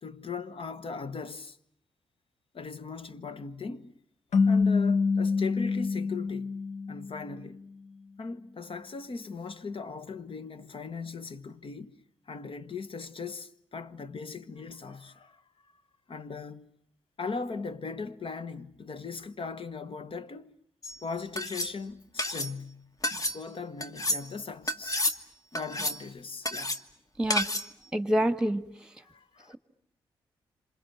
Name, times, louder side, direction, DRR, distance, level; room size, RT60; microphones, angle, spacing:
voice 1, 0.0-1.6 2.5-4.0 4.5-6.5 6.9-7.6 8.2-12.0 12.3-15.4 16.1-16.7 17.2-20.5 21.0-25.1 25.5-26.8 29.0-29.6, left 4 dB, 50° left, 1.2 m, -39 dB
sound 1, 4.3-7.5, left 4 dB, 70° left, 1.2 m, -26 dB
sound 2, 20.8-21.0 21.4-21.7 22.2-22.5 23.0-23.4 23.8-24.2 24.7-25.2 25.6-26.0 26.5-26.8 27.3-27.7, left 1 dB, 30° left, 1.7 m, -30 dB
voice 2, 27.9-28.6, right 1 dB, 5° right, 1.7 m, -26 dB
27.0 x 26.5 x 7.3 m
hypercardioid pair, 40°, 12 cm